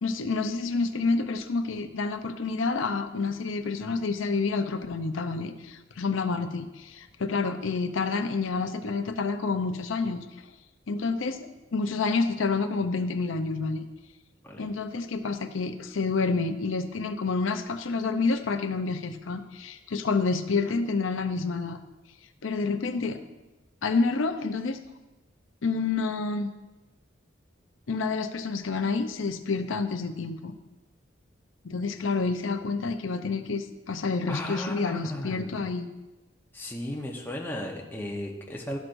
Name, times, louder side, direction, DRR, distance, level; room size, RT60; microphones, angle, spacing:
voice 1, 0.0-10.3 10.9-13.8 14.6-21.8 22.4-23.2 23.8-24.8 25.6-26.5 27.9-30.6 31.6-35.9, left 4 dB, 80° left, 8 dB, 0.6 m, -28 dB
voice 2, 34.3-35.7 36.5-38.8, left 1 dB, 10° left, -1 dB, 0.8 m, -35 dB
13.0 x 6.1 x 2.6 m, 1.1 s
head